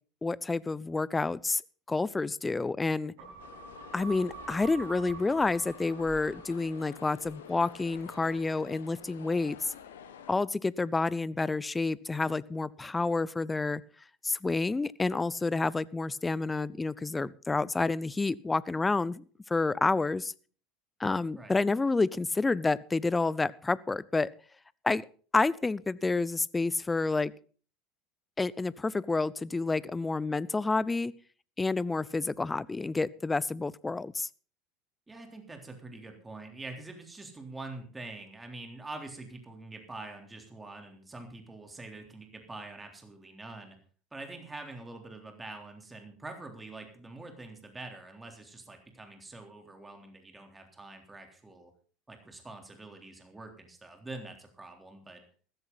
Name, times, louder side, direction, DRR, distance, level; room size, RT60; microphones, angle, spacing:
voice 1, 0.2-1.6 1.9-3.1 3.9-9.7 10.3-13.8 14.2-20.3 21.0-24.3 24.8-25.1 25.3-27.3 28.4-31.1 31.6-34.3, left 3 dB, 15° left, 22 dB, 0.6 m, -29 dB
sound 1, 3.2-7.9 8.2-8.3, right 5 dB, 65° right, 7.6 m, -47 dB
sound 2, 3.4-10.4, left 8 dB, 80° left, 1.6 m, -49 dB
voice 2, 35.1-43.8 44.1-51.7 52.1-55.2, right 2 dB, 15° right, 4 dB, 3.6 m, -45 dB
15.0 x 13.5 x 4.1 m, 0.41 s
hypercardioid pair, 75°, 0 cm